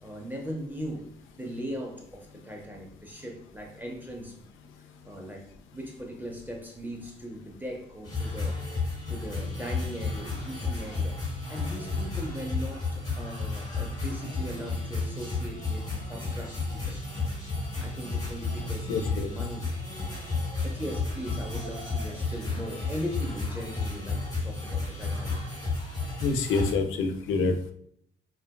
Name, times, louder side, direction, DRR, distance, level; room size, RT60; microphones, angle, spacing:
voice 1, 0.0-4.5 5.0-8.6 9.1-17.0 17.8-19.7 20.6-25.4, equal, 10° right, 1 dB, 0.6 m, -39 dB
sound 1, 8.0-26.7, left 3 dB, 20° left, 1.5 m, -32 dB
voice 2, 18.9-19.3 26.2-27.5, left 4 dB, 85° left, 6 dB, 0.5 m, -26 dB
3.8 x 2.2 x 2.3 m, 0.66 s
cardioid pair, 90°, 20 cm